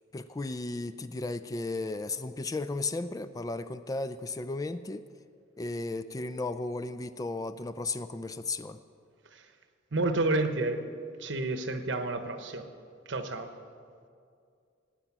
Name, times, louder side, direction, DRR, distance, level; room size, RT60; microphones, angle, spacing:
voice 1, 0.1-5.1 5.6-8.8, left 2 dB, 20° left, 11 dB, 0.3 m, -35 dB
voice 2, 9.9-10.8 11.2-12.6 13.1-13.5, right 2 dB, 65° right, 8 dB, 1.0 m, -30 dB
17.5 x 9.0 x 6.1 m, 2.3 s
head